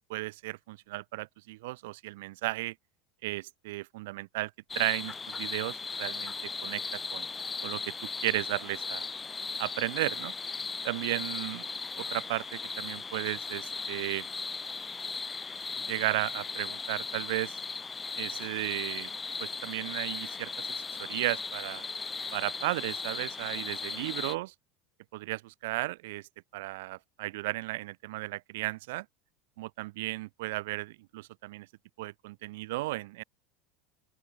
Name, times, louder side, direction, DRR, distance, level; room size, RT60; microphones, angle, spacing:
voice 1, 0.1-2.7 3.2-4.5 4.7-7.2 7.6-9.1 9.6-10.3 10.8-11.6 12.0-14.3 15.9-17.6 18.2-19.1 19.4-21.8 22.3-24.5 25.1-29.0 29.6-31.7 32.0-33.2, right 20 dB, 70° right, 1.6 m, -34 dB
sound 1, 4.7-24.3, left 4 dB, 20° left, 1.5 m, -37 dB
open air
hypercardioid pair, 80°, 0 cm